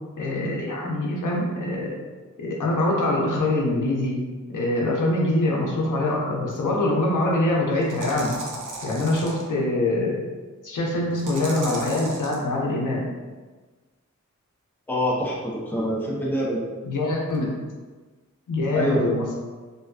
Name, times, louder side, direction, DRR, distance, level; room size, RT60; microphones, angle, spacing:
voice 1, 0.2-2.0 2.4-4.2 4.5-8.4 8.8-10.2 10.6-13.1 16.8-17.5 18.5-19.4, left 2 dB, 85° left, -2 dB, 0.6 m, -24 dB
sound 1, 6.5-6.6 7.8-9.4 11.2-12.4, right 2 dB, 90° right, 0.5 m, -36 dB
voice 2, 14.9-16.6 18.7-19.1, equal, 5° left, -4 dB, 0.5 m, -25 dB
2.5 x 2.2 x 2.3 m, 1.3 s
cardioid pair, 50°, 30 cm